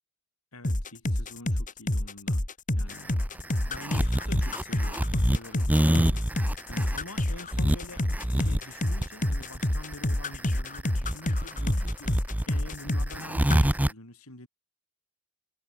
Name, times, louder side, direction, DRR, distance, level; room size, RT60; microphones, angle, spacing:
voice 1, 0.5-2.4 2.7-6.2 6.7-8.1 8.3-12.2 12.5-14.5, left 1 dB, 70° left, 6.0 m, -46 dB
sound 1, 0.6-13.2 13.5-13.7, left 1 dB, 35° left, 2.4 m, -28 dB
sound 2, 2.9-13.9, equal, 5° right, 0.8 m, -27 dB
head